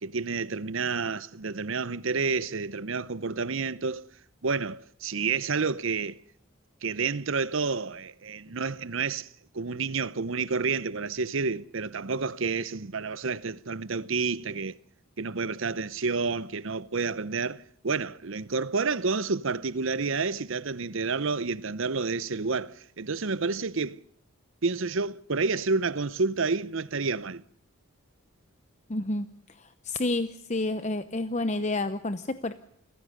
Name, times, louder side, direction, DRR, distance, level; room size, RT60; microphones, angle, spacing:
voice 1, 0.0-4.1 4.4-6.2 6.8-9.3 9.5-14.7 15.2-24.0 24.6-27.4, right 4 dB, 65° right, 0.8 m, -29 dB
voice 2, 28.9-29.3 29.6-32.5, left 2 dB, 30° left, 0.8 m, -29 dB
29.0 x 16.0 x 6.6 m
head